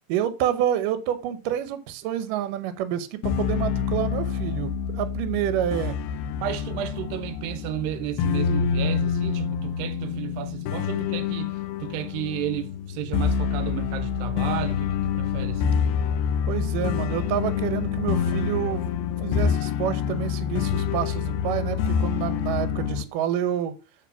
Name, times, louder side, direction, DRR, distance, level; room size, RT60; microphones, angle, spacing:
voice 1, 0.1-6.0 16.5-18.8 19.2-23.7, right 10 dB, 75° right, 2.0 m, -28 dB
sound 1, 3.2-23.0, left 7 dB, 75° left, 2.5 m, -27 dB
voice 2, 6.4-15.9, right 11 dB, 90° right, 2.8 m, -33 dB
8.9 x 4.0 x 7.1 m
omnidirectional pair, 4.8 m